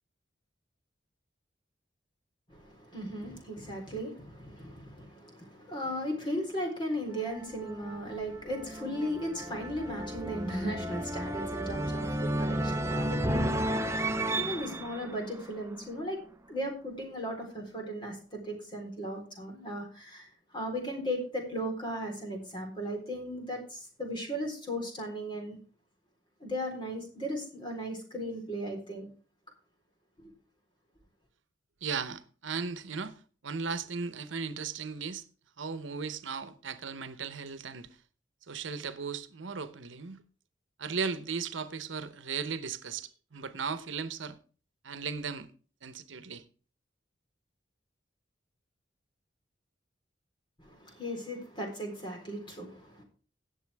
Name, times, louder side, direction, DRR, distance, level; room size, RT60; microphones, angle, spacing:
voice 1, 2.5-13.6 14.4-16.2 16.5-20.3 20.5-25.6 26.4-29.1 30.2-30.3 50.6-53.0, equal, 25° left, 4.0 m, -36 dB
sound 1, 7.1-16.1, right 1 dB, 15° right, 0.7 m, -33 dB
voice 2, 31.8-35.2 35.6-38.0 38.5-40.2 40.8-44.4 44.8-45.5 45.8-46.4, right 5 dB, 85° right, 0.9 m, -36 dB
17.5 x 7.2 x 3.5 m
head